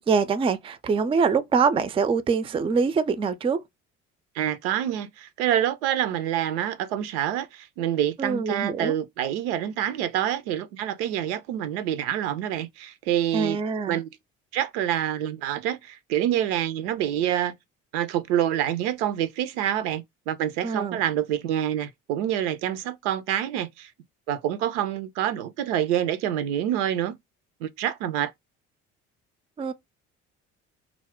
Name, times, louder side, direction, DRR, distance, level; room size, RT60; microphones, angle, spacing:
voice 1, 0.1-3.6 8.2-8.9 13.3-14.0 20.6-21.0 29.6-29.7, right 5 dB, 15° right, 0.3 m, -24 dB
voice 2, 4.3-13.6 13.9-14.1 14.5-17.5 17.9-23.9 24.3-27.2 27.6-28.3, right 11 dB, 75° right, 0.5 m, -27 dB
2.3 x 2.0 x 3.5 m
hypercardioid pair, 55°, 35 cm